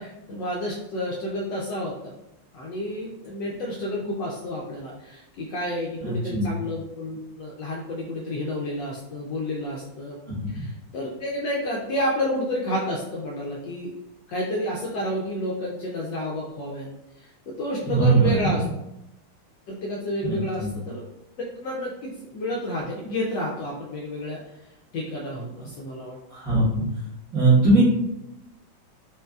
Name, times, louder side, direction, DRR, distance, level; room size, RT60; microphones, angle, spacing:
voice 1, 0.0-2.1 2.5-10.2 10.5-13.9 14.3-16.9 17.2-18.6 19.7-21.1 21.6-24.4 24.9-26.2, left 1 dB, 70° left, -3 dB, 1.1 m, -30 dB
voice 2, 6.0-6.5 10.3-10.6 17.8-18.7 20.2-20.7 26.3-26.8 27.3-27.8, right 3 dB, 45° right, -9 dB, 1.7 m, -21 dB
4.5 x 2.7 x 2.3 m, 0.87 s
omnidirectional pair, 2.4 m